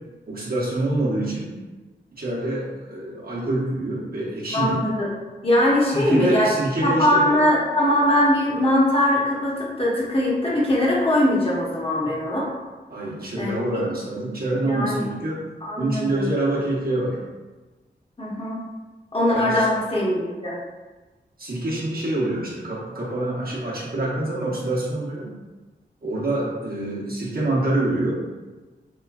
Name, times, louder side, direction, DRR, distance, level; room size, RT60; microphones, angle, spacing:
voice 1, 0.3-1.5 2.1-4.8 5.9-7.3 12.9-15.4 15.8-17.2 19.3-19.7 21.4-25.3 26.0-28.2, right 2 dB, 50° right, -6 dB, 0.9 m, -26 dB
voice 2, 4.5-5.1 5.4-6.5 6.8-12.5 13.4-13.5 14.6-15.0 15.6-16.3 18.2-18.7 19.1-20.6, left 1 dB, 30° left, -6 dB, 0.9 m, -21 dB
3.0 x 2.2 x 2.3 m, 1.2 s
cardioid pair, 50°, 20 cm